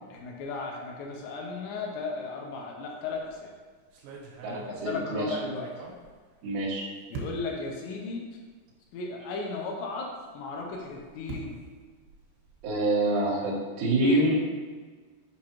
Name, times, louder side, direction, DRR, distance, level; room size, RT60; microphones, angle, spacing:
voice 1, 0.1-3.5 4.4-5.7 7.1-8.3 8.9-11.6 14.0-14.4, left 3 dB, 80° left, 0 dB, 2.8 m, -35 dB
sound 1, 3.1-3.4 3.9-6.7 7.1-7.7 8.4-8.5 8.8-8.9 10.6-12.9, right 4 dB, 80° right, 3.1 m, -44 dB
voice 2, 4.4-5.4 6.4-6.9 12.6-14.4, right 1 dB, 65° right, -6 dB, 2.1 m, -26 dB
7.7 x 4.9 x 2.9 m, 1.4 s
omnidirectional pair, 5.2 m